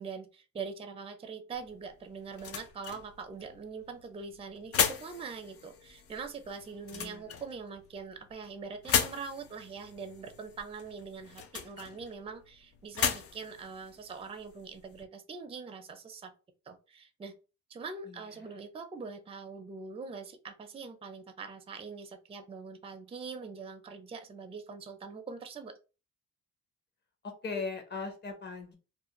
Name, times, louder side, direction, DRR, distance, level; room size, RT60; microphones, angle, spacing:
voice 1, 0.0-16.3 16.7-17.4 17.7-25.7, right 5 dB, 20° right, 6 dB, 0.4 m, -43 dB
sound 1, 1.5-15.0, left 7 dB, 50° left, 0.5 m, -37 dB
voice 2, 6.9-7.4 18.1-18.6 27.2-28.7, left 4 dB, 35° left, 4 dB, 0.9 m, -39 dB
2.5 x 2.1 x 2.9 m, 0.33 s
cardioid pair, 90°, 30 cm